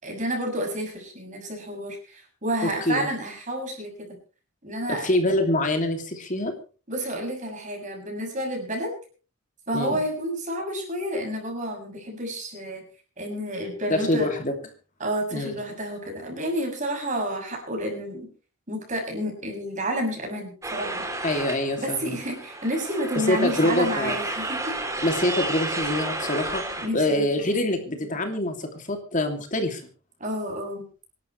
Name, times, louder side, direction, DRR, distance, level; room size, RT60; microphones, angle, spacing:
voice 1, 0.0-4.2 4.6-5.1 6.9-8.9 9.7-12.9 13.2-14.3 15.0-18.3 18.7-21.1 21.8-24.8 26.8-27.6 30.2-30.9, equal, 35° right, 2 dB, 7.0 m, -30 dB
voice 2, 2.8-3.1 5.0-6.5 9.7-10.0 13.9-14.5 15.3-15.6 21.2-22.2 23.3-24.2 25.0-26.6 26.9-29.8, left 1 dB, 40° left, 5 dB, 2.8 m, -25 dB
sound 1, 20.6-26.9, right 2 dB, 15° right, 3.2 m, -32 dB
26.5 x 12.0 x 3.3 m, 0.36 s
head